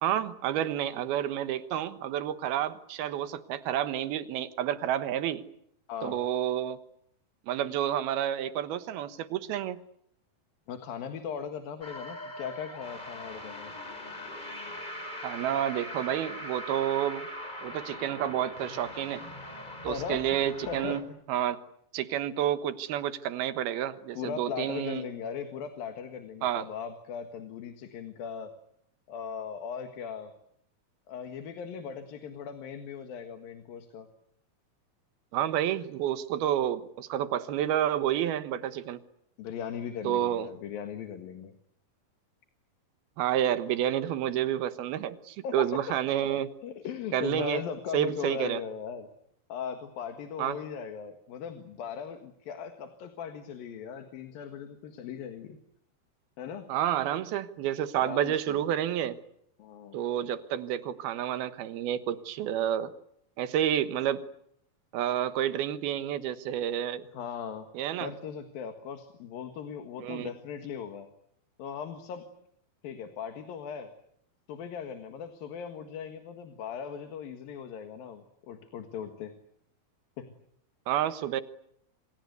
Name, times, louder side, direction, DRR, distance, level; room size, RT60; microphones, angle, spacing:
voice 1, 0.0-5.4 6.0-6.8 7.5-9.8 15.2-17.3 17.6-19.2 19.8-21.6 21.9-25.0 26.4-26.6 35.3-39.0 40.0-40.5 43.2-46.5 47.1-47.6 47.9-48.6 50.4-50.6 56.7-59.2 59.9-62.9 63.4-64.3 64.9-67.0 67.7-68.1 70.0-70.3 80.9-81.4, right 11 dB, 85° right, 12 dB, 3.2 m, -29 dB
voice 2, 5.9-6.2 10.7-13.7 19.9-20.4 20.7-21.2 24.2-28.5 29.1-30.3 31.1-34.1 39.4-41.5 45.4-45.8 46.6-49.1 49.5-55.6 56.4-56.7 58.0-58.6 59.6-60.0 67.1-67.7 68.0-71.1 71.6-72.3 72.8-73.9 74.5-79.3 80.2-80.3, left 7 dB, 70° left, 7 dB, 3.5 m, -38 dB
sound 1, 11.8-21.0, left 1 dB, 10° left, 3.9 m, -41 dB
28.0 x 26.0 x 8.2 m, 0.73 s
omnidirectional pair, 4.3 m